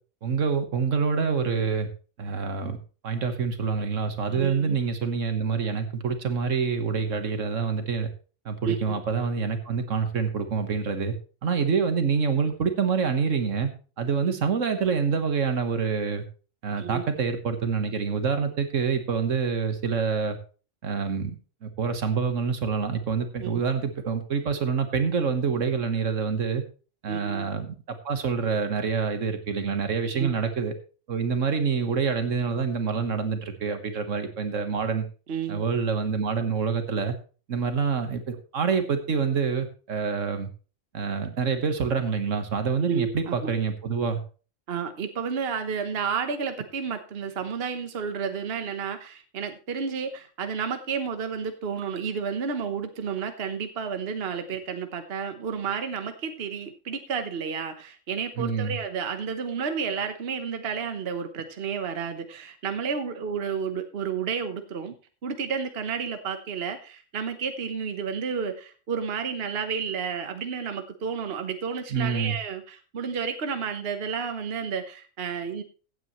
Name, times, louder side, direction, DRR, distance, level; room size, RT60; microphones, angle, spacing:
voice 1, 0.2-1.9 2.2-2.8 3.0-8.1 8.5-11.2 11.4-13.7 14.0-16.2 16.6-20.4 20.8-21.4 21.6-26.6 27.0-30.7 31.1-35.1 35.5-37.2 37.5-40.5 40.9-44.2 58.4-58.8 71.9-72.4, right 5 dB, 70° right, 8 dB, 1.7 m, -26 dB
voice 2, 4.3-4.8 8.6-8.8 14.2-14.3 16.8-17.0 23.4-23.6 27.1-27.5 30.1-30.4 35.3-35.7 42.8-43.5 44.7-64.9 65.2-75.6, right 6 dB, 50° right, 8 dB, 1.2 m, -31 dB
15.5 x 9.0 x 3.1 m, 0.36 s
omnidirectional pair, 1.4 m